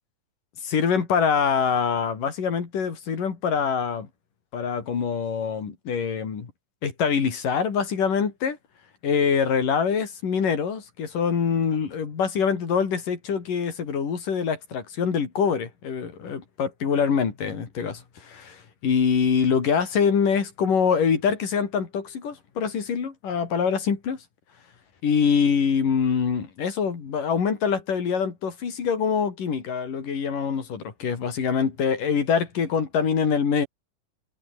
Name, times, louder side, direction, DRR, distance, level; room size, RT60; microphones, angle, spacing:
voice 1, 0.6-4.1 4.5-6.5 6.8-8.6 9.0-24.2 25.0-33.7, left 6 dB, 85° left, 5.3 m, -24 dB
omnidirectional pair, 3.7 m